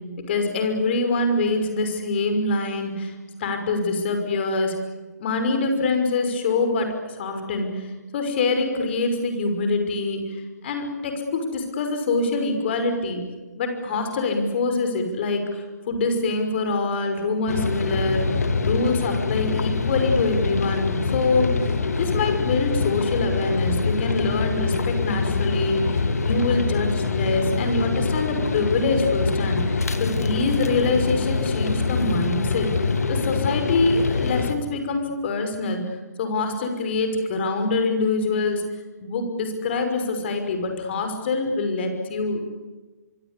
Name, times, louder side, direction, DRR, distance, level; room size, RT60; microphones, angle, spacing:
voice 1, 0.3-3.1 3.4-4.7 5.2-10.2 10.6-13.2 13.6-21.5 22.0-35.8 36.2-38.6 39.0-42.4, left 3 dB, 40° left, 6 dB, 5.8 m, -25 dB
sound 1, 17.5-34.5, left 4 dB, 65° left, 2.7 m, -24 dB
25.0 x 24.5 x 8.5 m, 1.3 s
figure-of-eight pair, 135°, 9 cm